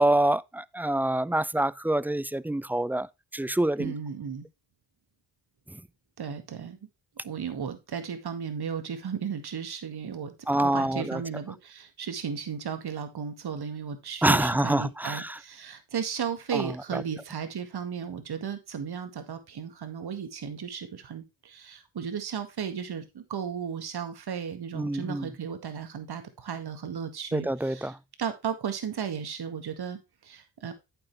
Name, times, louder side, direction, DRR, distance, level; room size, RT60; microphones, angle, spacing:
voice 1, 0.0-3.1 3.3-3.9 10.5-11.2 14.2-15.4 16.5-17.0 24.8-25.3 27.3-27.9, right 1 dB, 5° right, 0.4 m, -26 dB
voice 2, 3.8-4.5 6.2-6.8 7.2-30.7, right 7 dB, 60° right, 2.1 m, -35 dB
8.8 x 7.3 x 3.3 m
cardioid pair, 60°, 43 cm